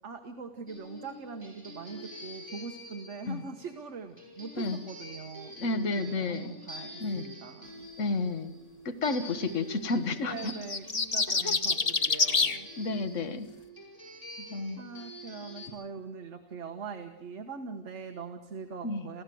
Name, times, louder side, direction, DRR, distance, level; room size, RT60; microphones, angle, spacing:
voice 1, 0.0-7.9 8.9-9.2 10.2-12.7 14.8-19.2, right 5 dB, 50° right, 6 dB, 1.5 m, -42 dB
sound 1, 0.7-15.7, equal, 10° left, 5.5 m, -47 dB
voice 2, 5.6-6.5 7.0-7.3 8.0-8.5 8.8-10.5 11.4-11.6 12.8-13.5 14.4-14.8 18.8-19.1, left 3 dB, 55° left, 9 dB, 1.6 m, -31 dB
sound 2, 10.5-12.6, left 4 dB, 30° left, 0.9 m, -26 dB
29.5 x 15.0 x 7.7 m, 1.1 s
omnidirectional pair, 1.7 m